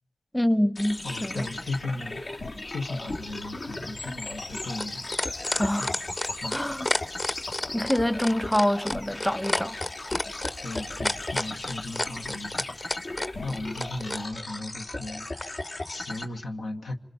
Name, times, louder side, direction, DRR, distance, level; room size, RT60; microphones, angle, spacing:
voice 1, 0.3-1.5 5.6-5.9 6.5-6.9 7.7-9.8, equal, 10° left, 1.0 m, -26 dB
sound 1, 0.8-16.3, left 2 dB, 70° left, 3.1 m, -37 dB
sound 2, 0.8-14.3, left 2 dB, 55° left, 1.3 m, -42 dB
voice 2, 1.0-2.2 2.7-5.9 6.4-6.6 7.6-7.8 10.6-13.2 13.4-16.9, left 2 dB, 90° left, 2.0 m, -36 dB
sound 3, 3.7-14.2 15.4-15.5, left 1 dB, 35° left, 1.3 m, -30 dB
27.5 x 26.5 x 7.2 m
cardioid pair, 50°, 0 cm